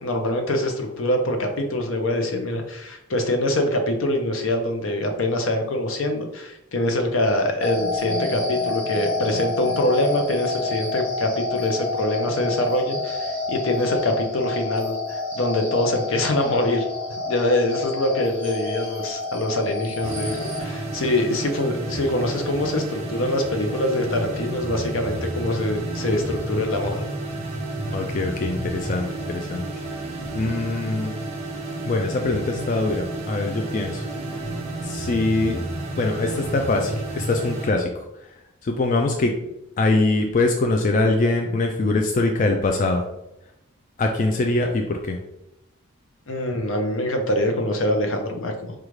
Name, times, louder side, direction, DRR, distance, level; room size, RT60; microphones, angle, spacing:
voice 1, 0.0-16.8 17.3-27.0 46.3-48.7, left 1 dB, 75° left, 4 dB, 0.6 m, -24 dB
sound 1, 7.6-20.6, left 3 dB, 10° left, 0.9 m, -29 dB
sound 2, 20.0-37.7, right 2 dB, 30° right, 0.8 m, -31 dB
voice 2, 27.9-29.6 30.3-31.1 31.9-34.1 34.8-35.6 36.0-37.9 38.6-39.3 39.8-43.0 44.0-45.2, left 2 dB, 40° left, 3 dB, 0.3 m, -23 dB
4.9 x 2.4 x 3.1 m, 0.87 s
head